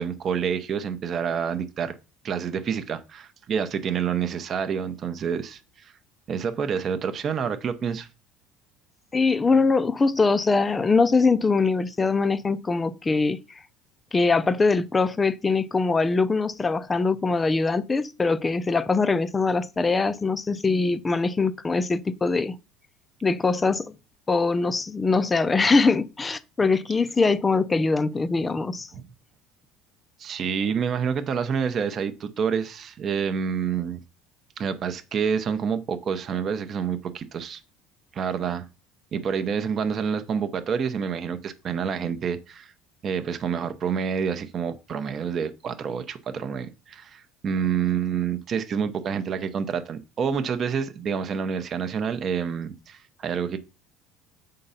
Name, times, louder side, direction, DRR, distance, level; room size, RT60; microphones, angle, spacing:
voice 1, 0.0-1.9 2.2-5.9 6.3-8.1 28.9-29.1 30.2-34.0 34.6-37.6 38.1-38.6 39.1-42.7 43.0-53.6, right 7 dB, 30° right, 0.7 m, -28 dB
voice 2, 9.1-13.4 14.1-22.6 23.2-23.9 24.3-28.9, left 4 dB, 15° left, 0.5 m, -22 dB
8.0 x 3.8 x 5.5 m
cardioid pair, 160°, 0 cm